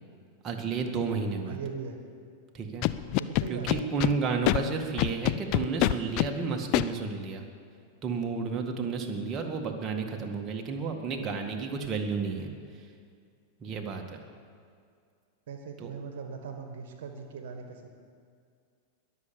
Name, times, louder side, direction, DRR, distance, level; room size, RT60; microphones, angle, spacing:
voice 1, 0.4-1.6 2.5-2.9 3.5-7.4 8.0-12.9 13.6-14.2 15.8-15.9, right 4 dB, 30° right, 2 dB, 2.0 m, -32 dB
voice 2, 1.5-2.0 3.2-3.9 15.5-17.9, right 6 dB, 60° right, 5 dB, 1.6 m, -39 dB
Scratching (performance technique), 2.8-4.1 4.4-4.6 5.0-6.3 6.7-6.8, left 17 dB, 45° left, 0.4 m, -24 dB
21.5 x 7.3 x 7.1 m, 2.2 s
figure-of-eight pair, 95°, 0 cm